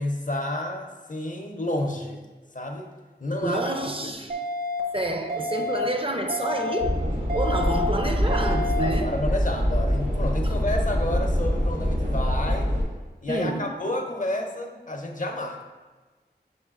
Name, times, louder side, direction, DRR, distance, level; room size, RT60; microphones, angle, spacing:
voice 1, 0.0-2.2 2.5-2.9 3.2-3.6 4.0-4.1 8.2-8.3 8.8-12.7 13.2-15.6, left 1 dB, 50° left, 0.5 m, -30 dB
voice 2, 3.4-4.4 4.9-7.0 7.3-9.2 10.4-10.5 13.3-13.7, right 2 dB, 30° right, 0.4 m, -28 dB
sound 1, 4.3-4.8 5.3-5.8 6.3-6.8 7.3-7.8 8.3-8.8, left 1 dB, 60° right, 0.8 m, -30 dB
sound 2, 6.8-12.8, equal, 90° right, 1.4 m, -25 dB
5.4 x 3.7 x 2.4 m
wide cardioid pair, 55°, 18 cm